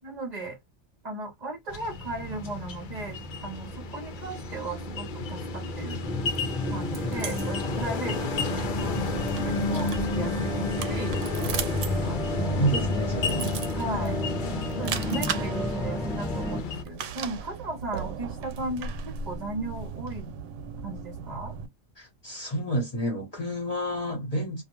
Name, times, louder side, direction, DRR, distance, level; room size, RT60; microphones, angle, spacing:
voice 1, 0.0-0.6 1.0-6.0 6.7-11.1 12.0-12.7 13.2-14.2 14.8-20.3 20.8-21.5, right 2 dB, 40° right, 1.0 m, -36 dB
sound 1, 1.7-16.8, left 3 dB, 55° left, 0.6 m, -32 dB
sound 2, 6.0-16.6, equal, 5° left, 0.4 m, -32 dB
sound 3, 6.3-21.7, right 6 dB, 85° right, 0.9 m, -38 dB
voice 2, 12.6-13.5 22.0-24.6, right 1 dB, 35° left, 1.1 m, -30 dB
2.3 x 2.3 x 2.9 m
omnidirectional pair, 1.2 m